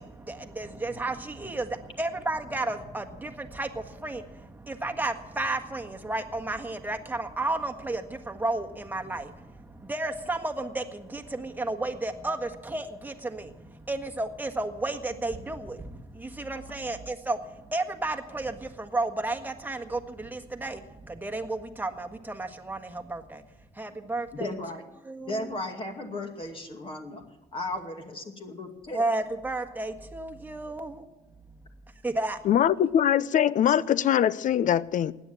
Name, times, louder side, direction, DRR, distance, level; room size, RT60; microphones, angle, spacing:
voice 1, 0.0-4.2 4.6-9.3 9.8-13.5 13.9-15.9 16.2-17.4 17.7-20.8 21.1-23.4 23.8-24.5 25.1-25.5 28.9-31.0 32.0-32.4, right 2 dB, 10° right, 1.6 m, -32 dB
voice 2, 24.3-24.8 25.2-27.2 27.5-29.0, left 2 dB, 30° left, 2.4 m, -35 dB
voice 3, 32.5-35.1, left 10 dB, 50° left, 0.6 m, -22 dB
16.5 x 10.0 x 7.7 m
cardioid pair, 110°, 17 cm